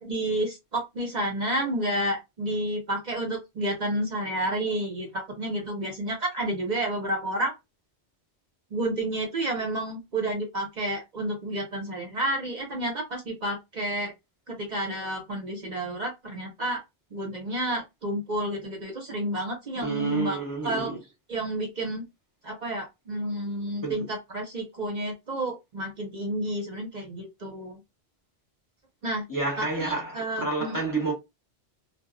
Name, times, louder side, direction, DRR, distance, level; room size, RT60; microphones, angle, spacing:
voice 1, 0.0-5.1 5.4-7.5 8.7-14.1 14.5-16.8 17.1-20.4 20.6-20.9 21.3-22.0 22.4-27.8 29.0-29.2 29.8-30.8, right 1 dB, 50° right, 0.7 m, -30 dB
voice 2, 19.7-21.0 23.8-24.0 29.3-31.1, right 3 dB, 20° left, 0.7 m, -29 dB
2.0 x 2.0 x 3.6 m
omnidirectional pair, 1.1 m